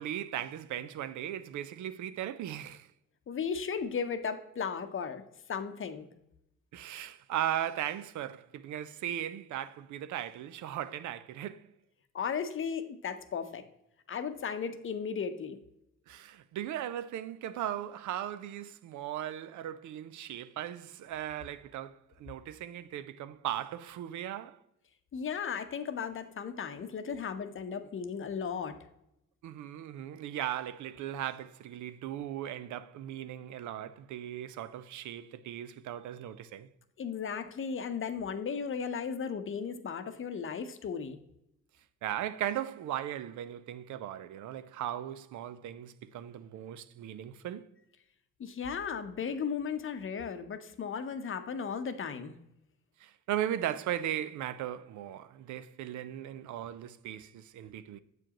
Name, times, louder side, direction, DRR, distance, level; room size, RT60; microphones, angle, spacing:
voice 1, 0.0-2.9 6.7-11.7 16.1-24.6 29.4-36.7 42.0-47.7 53.0-58.0, right 11 dB, 75° right, 0.5 m, -37 dB
voice 2, 3.3-5.2 5.5-6.1 12.1-13.6 14.1-15.6 25.1-28.8 37.0-41.2 48.4-52.3, left 6 dB, 45° left, 0.7 m, -35 dB
7.6 x 4.8 x 2.9 m
cardioid pair, 90°, 30 cm